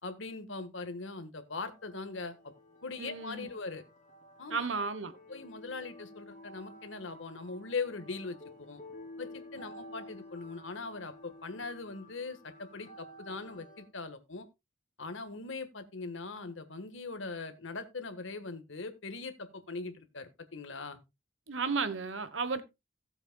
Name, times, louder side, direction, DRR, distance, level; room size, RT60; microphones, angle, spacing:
voice 1, 0.0-2.4 2.8-3.8 4.4-4.8 5.3-8.8 9.2-14.5 15.0-21.0, left 3 dB, 70° left, 1.4 m, -41 dB
sound 1, 1.6-13.9, left 1 dB, 40° left, 2.8 m, -52 dB
voice 2, 3.0-3.5 4.5-5.1 21.5-22.6, right 4 dB, 70° right, 1.1 m, -33 dB
16.5 x 7.8 x 2.2 m
head